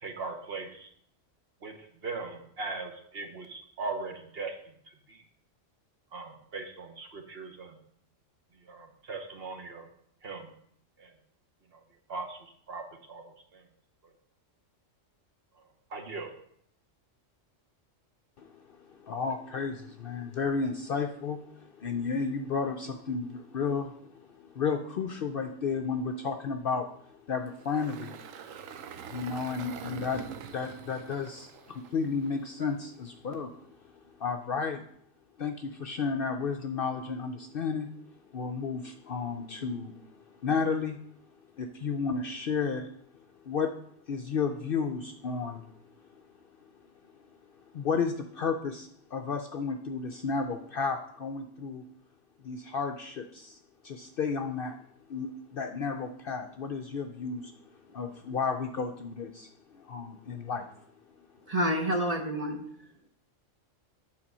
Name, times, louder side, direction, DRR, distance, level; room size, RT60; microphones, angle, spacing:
voice 1, 0.0-0.9 1.6-5.2 6.1-7.8 8.6-9.9 10.2-10.5 11.0-11.1 11.7-11.8 12.1-13.7 14.0-14.1 15.9-16.3, right 3 dB, 55° right, 4 dB, 1.2 m, -40 dB
voice 2, 18.4-28.2 29.1-33.6 34.0-34.8 35.4-37.9 38.3-41.0 41.6-42.9 43.4-43.7 44.1-45.7 47.7-51.8 52.4-54.8 55.1-57.5 57.9-60.7, left 5 dB, 60° left, 5 dB, 0.6 m, -33 dB
Engine, 27.5-32.7, right 8 dB, 90° right, 1.0 m, -45 dB
voice 3, 61.5-62.6, equal, 35° right, 2 dB, 0.7 m, -28 dB
8.7 x 4.3 x 5.3 m, 0.68 s
omnidirectional pair, 1.3 m